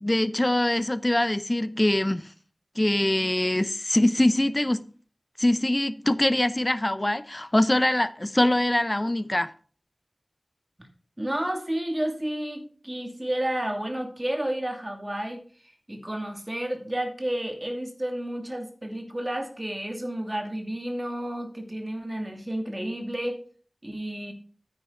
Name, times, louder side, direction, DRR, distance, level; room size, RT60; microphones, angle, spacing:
voice 1, 0.0-2.3 2.8-4.8 5.4-9.5, left 1 dB, 30° left, 0.7 m, -23 dB
voice 2, 11.2-15.4 15.9-23.4 23.8-24.3, right 1 dB, 25° right, 2.5 m, -31 dB
9.4 x 9.3 x 3.9 m
wide cardioid pair, 60°, 0 cm